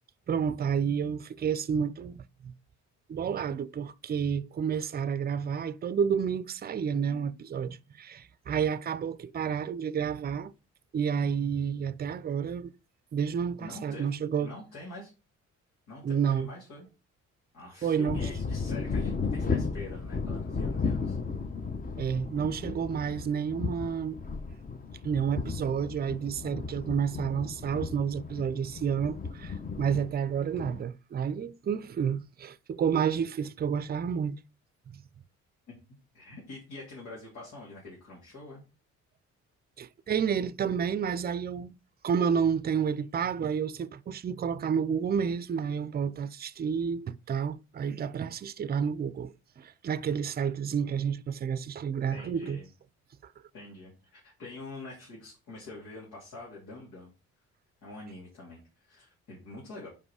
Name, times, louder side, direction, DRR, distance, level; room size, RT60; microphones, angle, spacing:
voice 1, 0.3-2.5 3.1-10.5 10.9-12.7 13.1-14.5 16.0-16.5 17.8-18.2 22.0-24.2 25.0-34.4 39.8-41.8 42.0-52.6, right 7 dB, 30° right, 0.5 m, -30 dB
voice 2, 13.6-14.1 14.4-15.1 15.9-16.9 17.5-21.2 35.7-35.8 36.1-38.6 52.1-52.7 53.5-57.1 57.8-59.9, left 2 dB, 85° left, 3.0 m, -45 dB
sound 1, 18.1-30.8, left 4 dB, 30° left, 0.8 m, -34 dB
5.4 x 5.2 x 4.8 m
cardioid pair, 90°, 30 cm